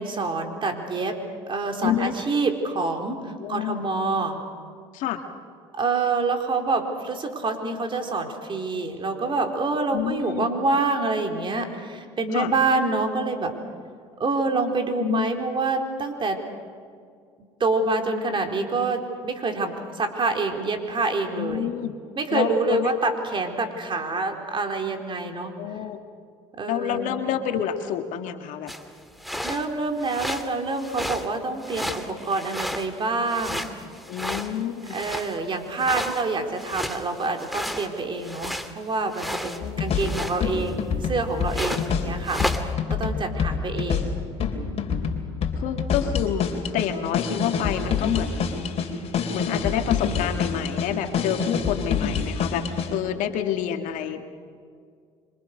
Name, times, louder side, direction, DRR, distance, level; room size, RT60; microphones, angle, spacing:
voice 1, 0.0-4.4 5.7-13.5 14.2-16.4 17.6-21.7 22.2-25.5 26.5-27.2 29.4-33.7 34.9-42.4 42.9-44.1, right 3 dB, 35° right, 4 dB, 4.2 m, -26 dB
voice 2, 1.8-2.1 3.4-3.8 4.9-5.2 9.9-10.5 12.3-12.5 14.9-15.3 21.4-21.9 22.3-22.9 25.6-26.0 26.7-28.7 34.1-35.0 39.6-39.8 41.7-41.8 45.6-48.3 49.3-54.2, left 10 dB, 65° left, 6 dB, 2.1 m, -28 dB
sound 1, 28.7-28.8 29.2-29.7 30.0-30.5 30.8-31.3 31.6-33.0 33.2-35.4 35.8-38.7 39.1-39.6 39.9-40.7 41.5-41.9 42.2-42.7, equal, ahead, 2.3 m, -32 dB
sound 2, 39.6-53.0, left 6 dB, 45° left, 3.8 m, -27 dB
26.5 x 25.0 x 6.7 m, 2.1 s
hypercardioid pair, 75°, 14 cm